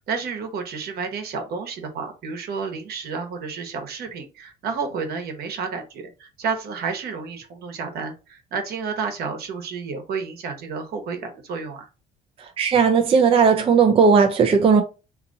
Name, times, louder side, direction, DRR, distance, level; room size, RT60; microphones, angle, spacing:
voice 1, 0.0-11.9, right 5 dB, 65° right, 1.1 m, -31 dB
voice 2, 12.6-14.8, right 5 dB, 35° right, 0.5 m, -16 dB
2.8 x 2.5 x 3.9 m
cardioid pair, 110°, 17 cm